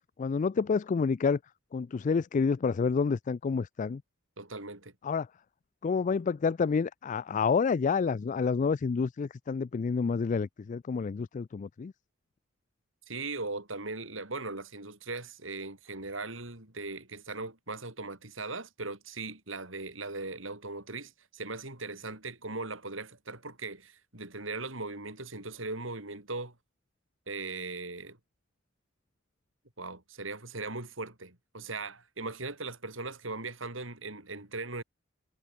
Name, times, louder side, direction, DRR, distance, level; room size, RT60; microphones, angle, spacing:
voice 1, 0.2-1.4 1.7-4.0 5.0-5.3 5.8-11.9, left 5 dB, 40° left, 0.3 m, -28 dB
voice 2, 4.4-4.9 13.1-26.5 27.3-28.2 29.8-34.8, right 3 dB, 75° right, 5.8 m, -39 dB
head